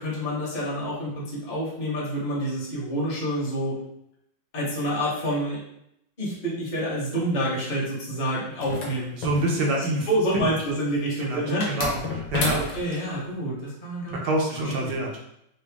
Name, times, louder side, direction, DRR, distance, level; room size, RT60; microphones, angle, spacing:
voice 1, 0.0-3.7 4.5-5.6 6.2-9.1 10.1-11.6 12.7-14.2 14.8-15.0, equal, 30° left, -5 dB, 0.9 m, -27 dB
sound 1, 8.6-10.0 11.6-13.0, left 3 dB, 70° left, 1.4 m, -31 dB
voice 2, 9.1-10.1 10.3-10.5 11.2-12.6 14.1-15.1, right 1 dB, 75° right, -1 dB, 1.3 m, -26 dB
3.8 x 2.2 x 3.4 m, 0.77 s
omnidirectional pair, 1.9 m